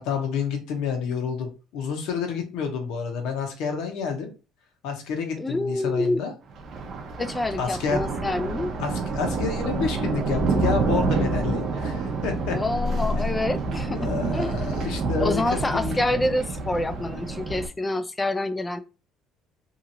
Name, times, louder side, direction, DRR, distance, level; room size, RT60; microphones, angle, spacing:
voice 1, 0.0-4.3 4.8-6.3 7.6-8.1 8.8-12.6 13.2-13.4 13.9-16.0, left 6 dB, 80° left, 0.8 m, -29 dB
voice 2, 5.4-6.2 7.2-8.7 12.5-14.5 15.2-18.8, left 2 dB, 15° left, 0.3 m, -27 dB
Thunder, 6.5-17.7, right 3 dB, 50° right, 0.5 m, -28 dB
2.8 x 2.4 x 2.7 m
cardioid pair, 120°, 0 cm